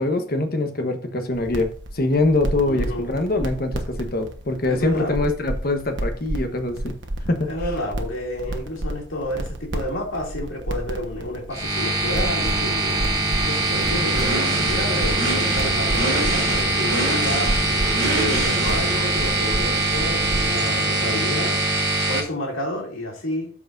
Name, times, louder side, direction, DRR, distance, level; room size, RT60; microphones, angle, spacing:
voice 1, 0.0-6.9 7.3-7.5, left 2 dB, 45° left, 1.0 m, -23 dB
sound 1, 1.3-20.6, right 1 dB, 60° right, 1.2 m, -31 dB
voice 2, 2.7-3.0 4.7-5.1 7.4-17.7 18.0-21.6 22.1-23.5, left 1 dB, 85° left, 2.5 m, -30 dB
sound 2, 11.5-22.2, right 2 dB, 15° right, 1.1 m, -23 dB
Race car auto racing / Idling / Accelerating revving vroom, 12.4-21.8, right 1 dB, 35° right, 3.7 m, -29 dB
13.0 x 4.8 x 2.6 m
head